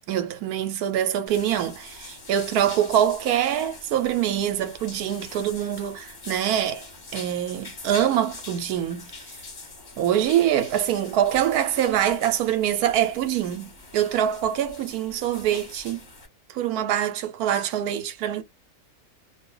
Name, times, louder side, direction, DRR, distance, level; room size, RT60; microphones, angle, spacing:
voice 1, 0.1-9.4 10.0-16.0 16.5-18.4, right 10 dB, 80° right, 1.1 m, -24 dB
sound 1, 1.3-16.3, left 3 dB, 35° left, 1.1 m, -44 dB
2.5 x 2.3 x 3.7 m
omnidirectional pair, 1.6 m